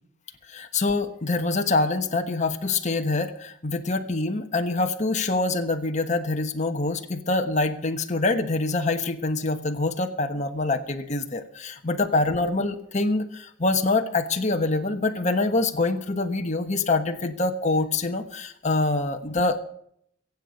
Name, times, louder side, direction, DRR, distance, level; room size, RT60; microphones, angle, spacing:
voice 1, 0.5-19.6, left 3 dB, 35° left, 5 dB, 1.2 m, -25 dB
23.0 x 8.3 x 5.2 m, 0.67 s
head